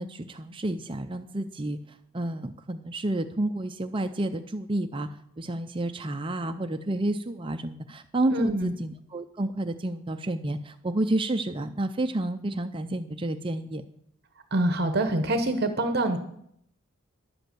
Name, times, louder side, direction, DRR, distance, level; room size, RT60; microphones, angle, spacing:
voice 1, 0.0-5.1 5.4-13.8, right 1 dB, 25° right, 7 dB, 0.5 m, -30 dB
voice 2, 8.3-8.7 14.5-16.2, right 1 dB, 50° right, 8 dB, 1.0 m, -25 dB
11.5 x 7.8 x 7.8 m, 0.72 s
head